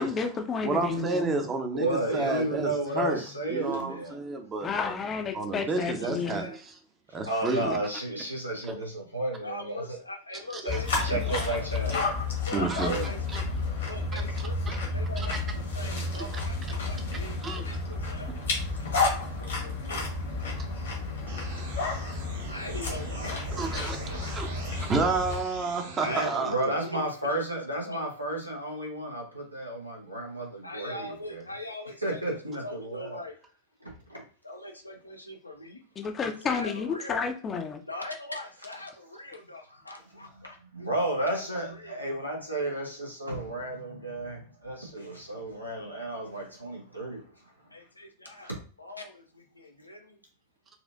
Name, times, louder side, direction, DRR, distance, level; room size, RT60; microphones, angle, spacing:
voice 1, 0.0-1.3 4.6-6.4 36.0-37.8, left 5 dB, 25° left, 5 dB, 0.6 m, -31 dB
voice 2, 0.6-3.2 3.5-4.7 5.3-6.5 7.1-7.8 10.5-10.6 11.0-11.2 12.5-12.9 13.3-13.4 14.1-14.2 14.7-14.8 15.2-15.3 17.4-17.6 23.6-24.0 24.3-26.5, right 3 dB, 20° right, 5 dB, 0.7 m, -30 dB
voice 3, 1.7-4.1 7.1-10.0 10.6-11.9 12.8-13.1 16.7-16.8 26.0-31.4 32.0-33.2 33.8-34.2 40.3-40.4 40.7-47.7 48.4-48.6, right 1 dB, 85° right, -1 dB, 1.0 m, -33 dB
voice 4, 5.8-6.6 9.4-12.0 12.4-13.2 13.8-20.1 22.5-24.7 26.0-27.6 27.9-28.1 30.6-33.4 34.4-35.8 36.4-37.2 37.8-41.4 41.7-42.7 47.7-48.5 48.8-50.2, left 2 dB, 85° left, 3 dB, 0.6 m, -42 dB
sound 1, 10.7-25.4, left 3 dB, 65° left, 1.2 m, -31 dB
sound 2, 21.3-26.3, right 3 dB, 65° right, 0.7 m, -43 dB
4.1 x 2.5 x 2.5 m, 0.39 s
figure-of-eight pair, 90°, 0 cm